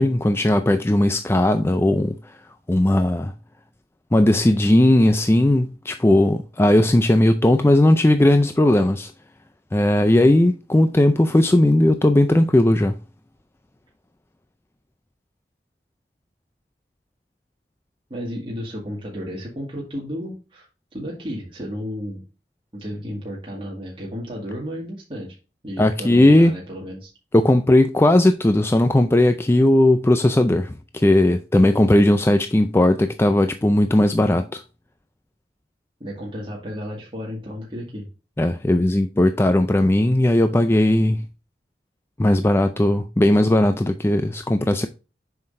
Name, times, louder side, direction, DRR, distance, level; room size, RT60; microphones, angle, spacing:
voice 1, 0.0-2.4 2.7-3.3 4.1-9.1 9.7-12.9 25.8-26.6 27.3-34.6 38.4-41.2 42.2-44.9, left 1 dB, 15° left, 0.4 m, -17 dB
voice 2, 18.1-20.7 20.9-22.3 22.7-25.4 25.6-27.1 36.0-38.1, equal, 30° right, 2.0 m, -33 dB
7.4 x 5.9 x 2.6 m
head